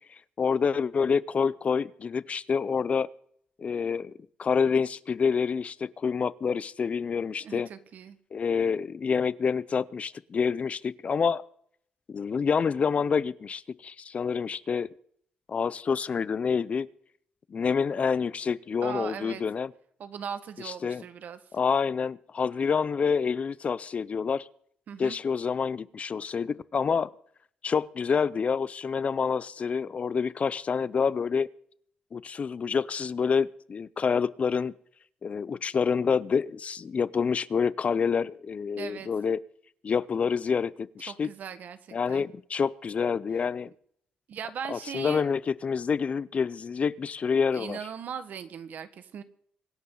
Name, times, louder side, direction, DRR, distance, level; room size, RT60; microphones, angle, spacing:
voice 1, 0.4-3.1 3.6-4.1 4.4-7.7 8.3-11.4 12.1-14.9 15.5-16.9 17.5-19.7 20.6-21.0 21.5-24.5 25.0-27.1 27.6-31.5 32.1-34.7 35.2-39.4 39.8-41.3 41.9-43.7 44.7-47.8, left 6 dB, 45° left, 20 dB, 0.6 m, -27 dB
voice 2, 7.4-8.2 18.8-19.4 20.0-21.4 24.9-25.2 38.8-39.1 41.1-42.2 44.3-45.2 47.5-49.2, right 8 dB, 70° right, 11 dB, 1.5 m, -39 dB
24.5 x 11.0 x 4.0 m, 0.65 s
cardioid pair, 75°, 3 cm